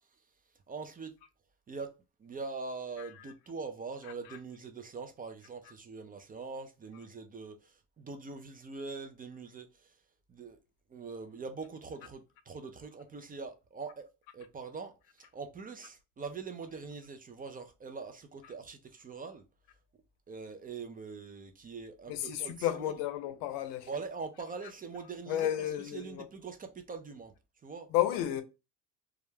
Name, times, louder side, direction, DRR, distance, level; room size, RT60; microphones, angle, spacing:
voice 1, 0.7-1.1 1.7-1.9 2.2-10.0 10.3-10.6 10.9-14.1 14.3-19.4 20.3-23.0 23.9-25.5 25.8-27.3 27.6-27.9, right 4 dB, 25° right, 0.4 m, -43 dB
voice 2, 22.1-23.9 25.3-26.3 27.9-28.4, left 12 dB, 80° left, 0.6 m, -32 dB
2.4 x 2.1 x 3.1 m
supercardioid pair, 95°, 39 cm